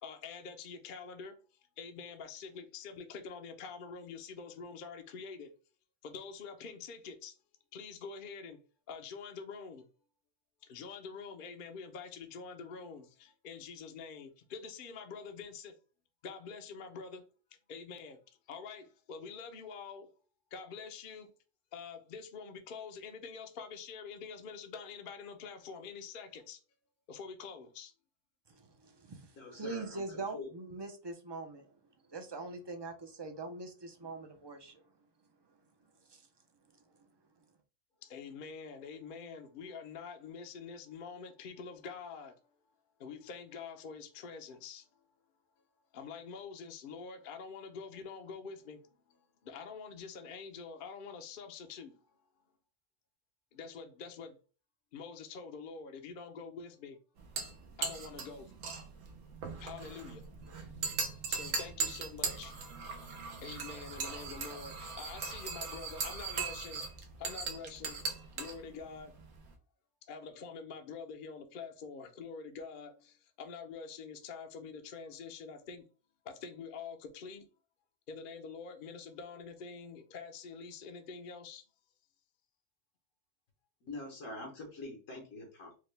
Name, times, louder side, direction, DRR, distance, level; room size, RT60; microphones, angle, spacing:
voice 1, 0.0-1.4 1.8-5.5 6.0-7.4 7.7-9.9 10.6-15.8 16.2-17.3 17.7-18.2 18.5-20.2 20.5-21.3 21.7-26.6 27.1-27.9 38.0-42.4 43.0-44.9 45.9-48.8 49.1-52.0 53.5-54.4 54.9-57.0 57.8-58.5 59.6-60.2 61.3-62.5 63.4-66.9 67.2-68.0 68.3-69.2 70.1-75.9 76.2-77.5 78.1-81.6, left 5 dB, 55° left, 0.7 m, -46 dB
voice 2, 28.5-31.7 32.1-34.8 36.1-36.2, right 3 dB, 40° right, 0.3 m, -43 dB
voice 3, 29.3-30.5 83.8-85.7, left 2 dB, 85° left, 1.5 m, -45 dB
sound 1, 57.2-69.5, right 4 dB, 80° right, 1.1 m, -39 dB
4.8 x 2.2 x 3.2 m
omnidirectional pair, 1.3 m